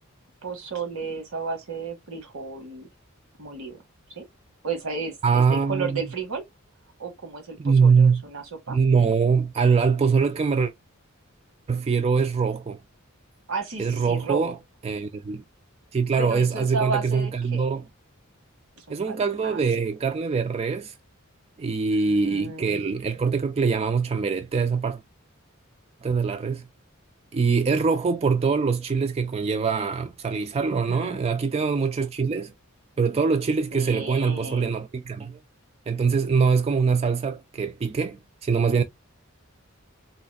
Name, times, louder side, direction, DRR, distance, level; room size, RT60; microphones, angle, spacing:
voice 1, 0.4-2.9 3.4-3.8 4.1-4.3 4.6-6.4 7.0-8.8 13.5-14.5 16.2-17.7 18.8-19.6 22.0-22.8 30.7-31.2 33.7-34.7, right 4 dB, 80° right, 1.3 m, -33 dB
voice 2, 5.2-6.0 7.6-8.2 8.7-10.7 11.7-12.8 13.8-14.5 14.8-15.4 15.9-17.9 18.9-20.9 21.6-25.0 26.0-26.6 27.3-32.5 33.0-35.4 35.9-38.8, right 5 dB, 30° right, 0.3 m, -23 dB
4.0 x 2.4 x 2.3 m
head